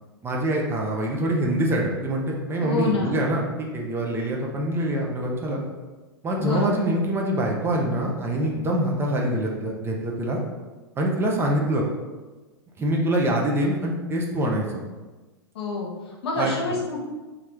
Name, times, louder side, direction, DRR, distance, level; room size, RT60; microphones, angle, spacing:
voice 1, 0.2-5.6 6.2-10.4 11.0-11.8 12.8-14.8 16.3-16.5, right 1 dB, 15° right, -1 dB, 0.5 m, -25 dB
voice 2, 2.6-3.2 6.4-6.9 15.5-17.0, left 3 dB, 70° left, -2 dB, 1.0 m, -27 dB
3.0 x 2.4 x 3.3 m, 1.2 s
hypercardioid pair, 105°, 14 cm